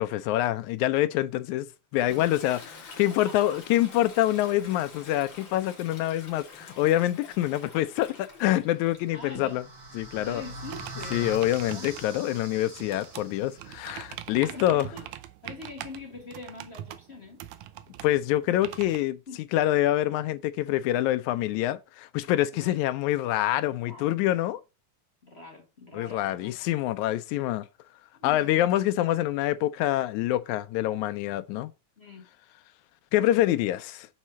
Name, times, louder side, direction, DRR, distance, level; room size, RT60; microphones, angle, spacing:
voice 1, 0.0-1.7 1.9-2.6 3.0-9.6 9.9-10.4 11.1-14.9 18.0-19.2 19.5-24.6 25.9-27.7 28.2-31.7 33.1-34.1, left 14 dB, 85° left, 2.0 m, -26 dB
Toilet flush, 2.1-9.9 10.3-14.6, left 4 dB, 45° left, 2.3 m, -49 dB
voice 2, 3.2-3.6 9.1-9.5 10.2-11.4 11.6-12.0 14.4-15.0 15.4-17.4 19.3-19.5 22.5-22.8 23.8-24.2 25.2-26.8 28.1-28.9 32.0-32.3, left 3 dB, 30° left, 1.4 m, -44 dB
sound 1, 8.7-13.8, right 2 dB, 55° right, 3.6 m, -43 dB
sound 2, 10.7-19.0, right 13 dB, 80° right, 2.0 m, -43 dB
6.6 x 4.2 x 6.2 m
omnidirectional pair, 3.4 m